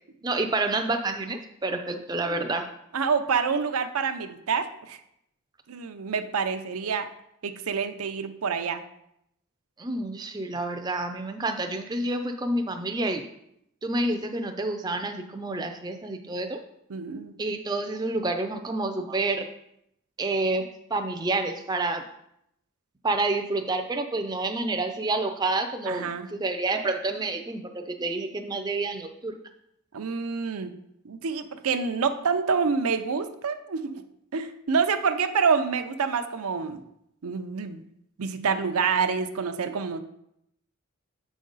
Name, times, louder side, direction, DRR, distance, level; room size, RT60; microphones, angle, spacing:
voice 1, 0.2-2.7 9.8-13.2 13.8-16.6 17.4-19.5 20.2-22.0 23.0-29.4, right 2 dB, 20° right, 5 dB, 0.4 m, -28 dB
voice 2, 2.9-5.0 5.7-7.1 7.4-8.8 16.9-17.3 25.9-26.3 29.9-30.7 31.0-34.0 34.3-36.8 37.2-37.8 38.2-40.0, right 5 dB, 85° right, 8 dB, 0.6 m, -27 dB
7.5 x 5.1 x 4.0 m, 0.76 s
head